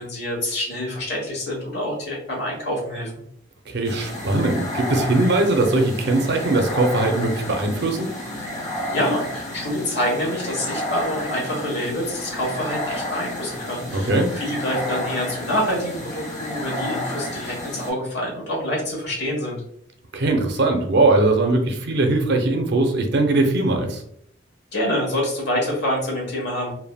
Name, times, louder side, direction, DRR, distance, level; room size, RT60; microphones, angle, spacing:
voice 1, 0.0-3.1 8.9-19.6 24.7-26.7, equal, 60° left, -3 dB, 1.2 m, -26 dB
voice 2, 3.7-8.1 13.9-14.3 20.1-24.0, right 2 dB, 60° right, 4 dB, 0.5 m, -20 dB
sound 1, 3.8-17.9, left 1 dB, 35° left, 1.3 m, -31 dB
3.3 x 2.1 x 2.2 m, 0.68 s
head